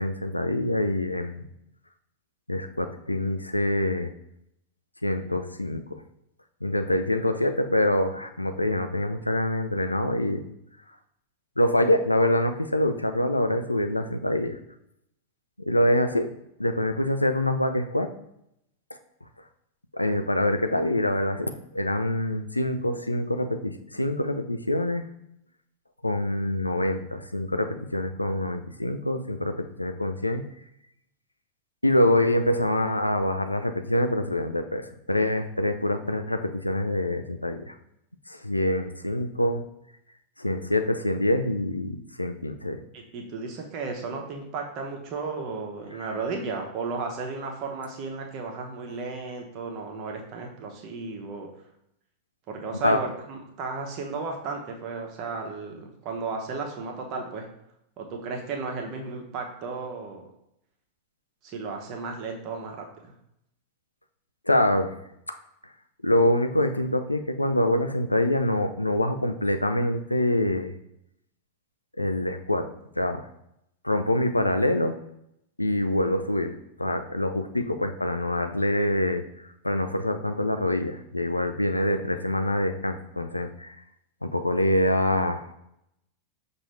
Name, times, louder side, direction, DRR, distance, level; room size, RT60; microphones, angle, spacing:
voice 1, 0.0-1.4 2.5-4.1 5.0-6.0 6.6-10.5 11.6-14.6 15.7-16.3 16.6-18.1 19.9-25.1 26.0-30.4 31.8-37.7 38.3-39.6 40.4-42.8 45.9-46.1 52.8-53.0 64.5-64.9 66.0-70.7 72.0-73.3 73.8-75.0 75.6-83.8 84.2-85.4, left 1 dB, 85° left, 8 dB, 0.3 m, -25 dB
voice 2, 42.9-51.5 52.5-57.5 58.0-60.2 61.4-63.1, right 4 dB, 40° right, 2 dB, 0.9 m, -34 dB
6.1 x 2.6 x 3.1 m, 0.78 s
figure-of-eight pair, 90°, 0 cm